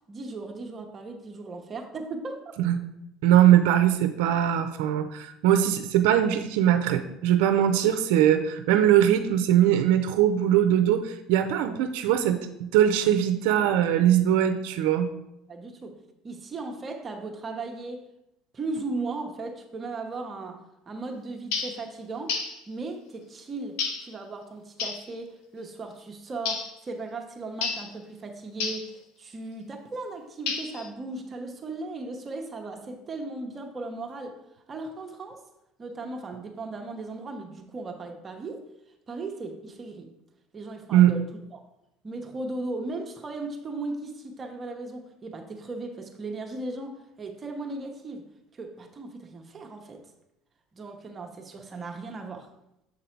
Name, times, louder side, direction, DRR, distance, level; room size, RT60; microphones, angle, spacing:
voice 1, 0.1-2.4 15.5-18.1 18.5-22.4 22.7-34.4 34.7-35.4 35.8-38.6 39.1-40.1 40.5-41.6 42.0-48.3 48.5-50.1 50.7-52.5, right 3 dB, 30° right, 3 dB, 0.9 m, -37 dB
voice 2, 3.2-12.4 12.7-15.1 40.9-41.1, right 11 dB, 80° right, 8 dB, 0.5 m, -21 dB
sound 1, 21.5-21.8 22.3-22.6 23.8-24.1 24.8-25.1 26.4-26.7 27.6-27.9 28.6-28.9 30.5-30.9, left 5 dB, 80° left, 0.9 m, -30 dB
7.3 x 3.9 x 4.5 m, 0.86 s
supercardioid pair, 100°, 0 cm